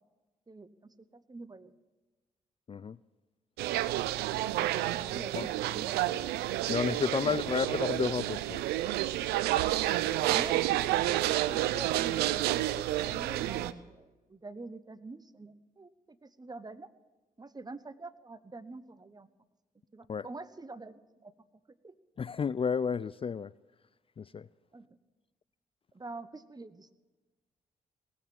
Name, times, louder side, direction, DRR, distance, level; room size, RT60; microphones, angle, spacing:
voice 1, 0.5-1.7 5.0-6.2 7.3-7.4 10.2-12.7 13.0-16.9 17.4-19.3 19.9-21.3 21.7-21.9 24.7-25.0 25.9-26.9, right 3 dB, 25° right, 1.2 m, -46 dB
sound 1, 3.6-13.7, right 14 dB, 85° right, 0.6 m, -30 dB
voice 2, 6.7-8.6 20.1-20.3 22.2-23.5 24.2-24.5, left 6 dB, 35° left, 0.4 m, -31 dB
19.0 x 8.4 x 8.9 m
hypercardioid pair, 45°, 16 cm